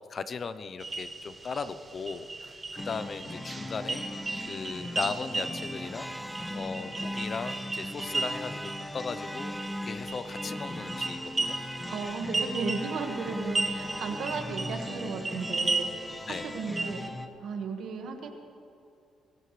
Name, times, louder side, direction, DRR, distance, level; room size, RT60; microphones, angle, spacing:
voice 1, 0.0-4.0 4.4-6.1 6.5-9.5 9.8-11.6 14.2-14.4 16.3-16.5, left 5 dB, 45° left, 12 dB, 0.7 m, -37 dB
sound 1, 0.8-17.1, right 3 dB, 25° right, 1.2 m, -36 dB
sound 2, 2.8-17.3, left 1 dB, 15° left, 1.1 m, -39 dB
Alarm, 5.5-14.9, right 1 dB, 5° right, 0.6 m, -44 dB
voice 2, 11.9-17.1 17.4-18.3, right 4 dB, 70° right, 4 dB, 1.8 m, -35 dB
23.5 x 15.0 x 3.4 m, 2.6 s
cardioid pair, 90°, 0 cm